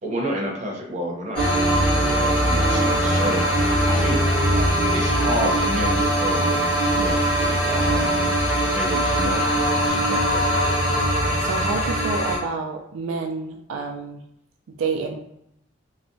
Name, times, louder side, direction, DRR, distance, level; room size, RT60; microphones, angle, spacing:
voice 1, 0.0-3.4 3.9-4.2 4.9-6.6 6.9-8.2 8.7-9.4 9.9-10.5, equal, 35° right, -2 dB, 0.6 m, -30 dB
sound 1, 1.3-12.4, right 1 dB, 20° left, 1.0 m, -21 dB
voice 2, 11.4-14.2 14.8-15.2, right 4 dB, 90° right, 2 dB, 0.3 m, -28 dB
2.7 x 2.1 x 2.6 m, 0.79 s
head